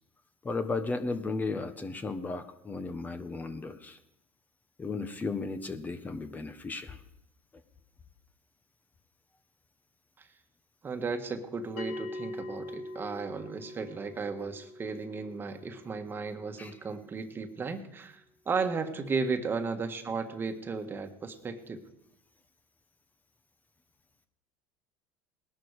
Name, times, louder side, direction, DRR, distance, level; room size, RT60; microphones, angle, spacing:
voice 1, 0.4-4.0 4.8-7.0 16.6-16.7, left 3 dB, 20° left, 9 dB, 1.3 m, -35 dB
voice 2, 10.8-21.8, right 4 dB, 30° right, 7 dB, 1.6 m, -35 dB
Bell, 11.8-16.8, left 1 dB, 75° left, 3.0 m, -43 dB
19.5 x 12.0 x 4.9 m, 0.82 s
supercardioid pair, 95°, 8 cm